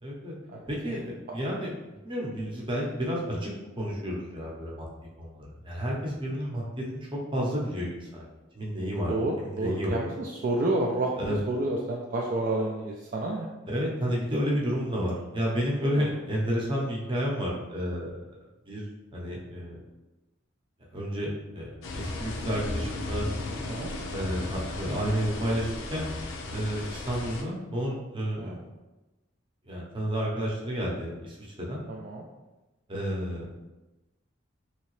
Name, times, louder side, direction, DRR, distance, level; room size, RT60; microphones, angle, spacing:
voice 1, 0.0-0.3 0.7-1.0 1.3-3.5 3.8-4.8 5.2-6.6 7.3-8.2 8.5-10.0 11.2-11.4 13.7-18.2 18.7-18.8 19.1-19.8 20.9-23.3 24.1-26.1 26.5-28.7 29.7-31.8 32.9-33.4, equal, 25° right, -3 dB, 0.7 m, -31 dB
voice 2, 0.5-1.0 9.1-13.5 15.9-16.1 23.7-23.9 28.4-28.6 31.9-32.2, right 2 dB, 45° right, -2 dB, 0.3 m, -30 dB
sound 1, 21.8-27.4, left 2 dB, 75° left, 0.5 m, -35 dB
3.2 x 2.8 x 3.0 m, 1.1 s
head